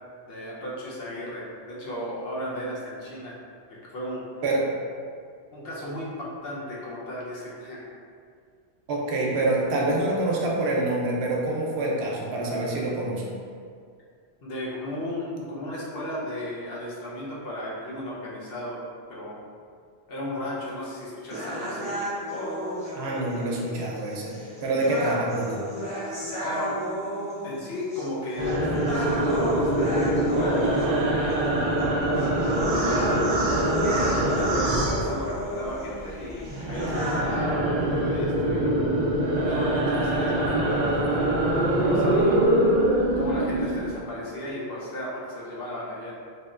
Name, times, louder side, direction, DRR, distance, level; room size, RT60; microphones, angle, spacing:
voice 1, 0.3-3.4 3.9-4.2 5.5-7.9 14.4-18.8 19.1-19.4 20.1-22.0 26.4-26.8 27.4-28.5 28.8-31.4 32.5-33.3 34.2-38.7 39.4-42.4 43.2-46.1, left 1 dB, 70° left, -6 dB, 0.9 m, -35 dB
voice 2, 8.9-13.2 22.9-25.7, right 2 dB, 85° right, -2 dB, 0.9 m, -26 dB
sound 1, 21.3-37.3, equal, 5° left, 0.8 m, -33 dB
sound 2, 28.4-35.7 36.0-44.0, right 1 dB, 55° right, 0.5 m, -24 dB
3.5 x 2.6 x 2.4 m, 2.2 s
omnidirectional pair, 1.1 m